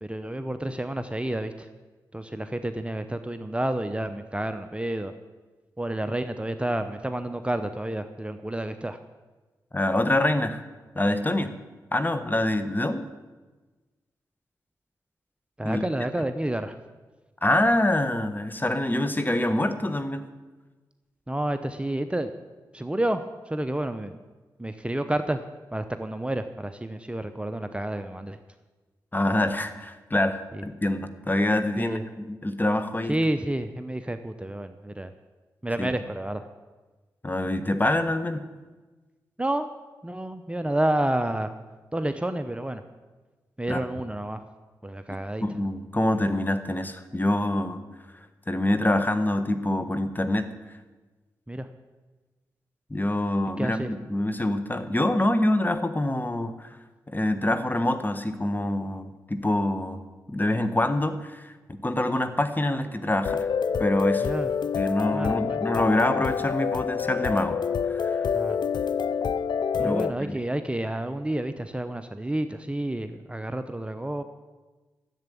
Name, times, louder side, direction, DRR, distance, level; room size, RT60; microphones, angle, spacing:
voice 1, 0.0-1.7 2.1-5.1 5.8-9.0 15.6-16.8 21.3-22.3 22.7-24.2 24.6-25.4 25.7-28.4 30.5-30.6 31.8-32.0 33.1-35.1 35.6-36.5 39.4-39.7 40.0-41.5 41.9-42.8 43.6-44.4 44.8-45.4 51.5-51.7 53.6-53.9 64.2-64.5 65.1-65.6 68.3-68.6 69.8-74.2, right 1 dB, 15° right, 9 dB, 0.8 m, -30 dB
voice 2, 9.7-10.6 10.9-11.5 11.9-13.1 15.6-15.8 17.4-20.3 29.1-33.1 35.8-35.9 37.2-38.5 43.7-43.8 45.4-47.8 48.5-50.5 52.9-56.7 57.1-63.5 63.8-64.3 64.8-67.6 67.9-68.2 69.8-70.3, left 1 dB, 25° left, 10 dB, 1.3 m, -25 dB
sound 1, 63.2-70.1, left 6 dB, 65° left, 0.5 m, -27 dB
10.5 x 7.9 x 8.5 m, 1.3 s
supercardioid pair, 45°, 8 cm